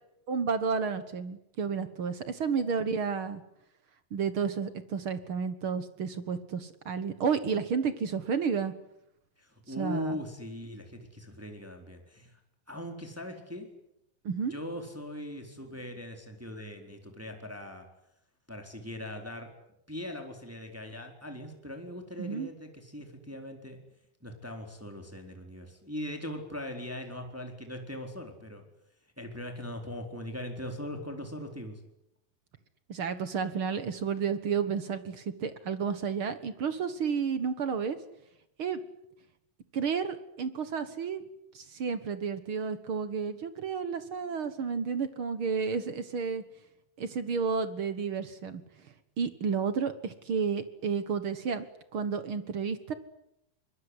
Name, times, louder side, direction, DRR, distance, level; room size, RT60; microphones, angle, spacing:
voice 1, 0.3-3.4 4.1-8.7 9.8-10.1 14.2-14.5 22.2-22.5 32.9-38.0 38.6-38.8 39.7-41.2 41.5-46.4 47.0-48.6 49.2-51.7 51.9-52.9, right 6 dB, 55° right, 12 dB, 1.6 m, -31 dB
voice 2, 9.4-12.4 12.7-13.7 14.4-17.8 18.5-19.5 19.9-23.8 24.2-28.6 29.2-31.8, left 1 dB, 5° right, 4 dB, 3.8 m, -40 dB
25.5 x 22.5 x 9.8 m, 0.81 s
omnidirectional pair, 4.1 m